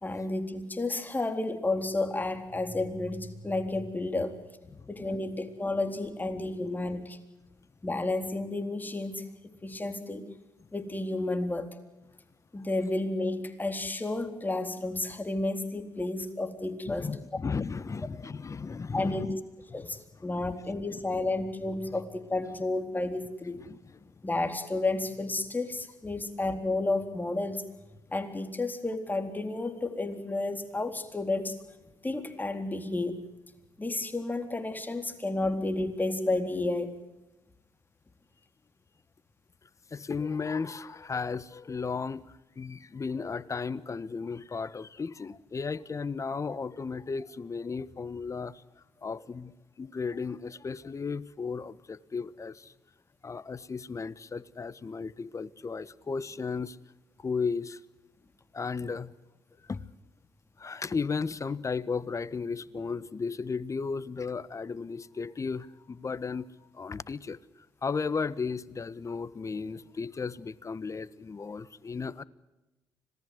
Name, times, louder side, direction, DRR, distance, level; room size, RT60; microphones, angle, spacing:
voice 1, 0.0-4.4 4.9-7.2 7.8-9.3 9.6-10.3 10.7-11.8 12.5-17.1 18.9-19.4 19.7-23.6 24.2-27.6 28.1-31.6 32.0-33.2 33.8-37.0, left 2 dB, 20° left, 7 dB, 4.0 m, -31 dB
voice 2, 16.9-19.3 19.7-19.9 20.2-20.4 23.6-24.1 39.9-42.2 42.6-48.6 49.0-52.7 53.2-56.8 57.2-57.8 58.5-59.1 59.7-59.8 60.6-66.5 66.7-67.4 67.8-72.2, left 5 dB, 35° left, 18 dB, 1.3 m, -35 dB
26.0 x 19.0 x 8.0 m, 1.0 s
supercardioid pair, 55°, 9 cm